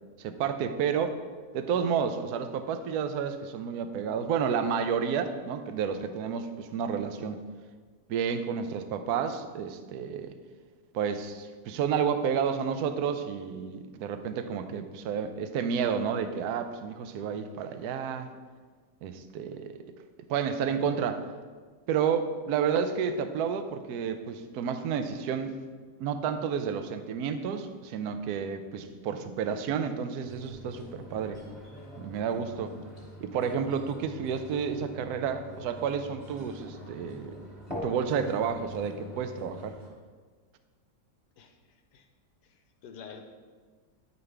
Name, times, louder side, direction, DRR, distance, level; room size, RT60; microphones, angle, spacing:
voice 1, 0.2-1.2 1.5-7.4 8.1-10.3 10.9-18.3 19.0-19.8 20.3-21.2 21.9-25.6 26.0-31.4 32.0-32.7 33.2-37.4 37.8-39.8, right 7 dB, 70° right, 9 dB, 1.0 m, -30 dB
sound 1, 30.2-39.9, equal, 10° left, 1.8 m, -44 dB
voice 2, 42.4-43.2, left 6 dB, 75° left, 5 dB, 1.2 m, -48 dB
9.3 x 5.4 x 3.3 m, 1.5 s
omnidirectional pair, 1.9 m